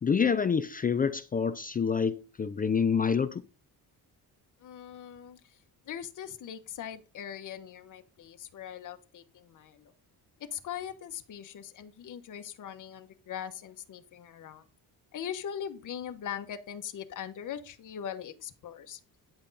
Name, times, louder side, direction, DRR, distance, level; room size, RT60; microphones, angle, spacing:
voice 1, 0.0-3.4, left 6 dB, 25° left, 0.4 m, -27 dB
voice 2, 4.6-5.5 5.9-9.9 10.5-14.6 15.1-19.0, left 9 dB, 50° left, 1.3 m, -41 dB
10.0 x 7.9 x 4.1 m
cardioid pair, 180°, 39 cm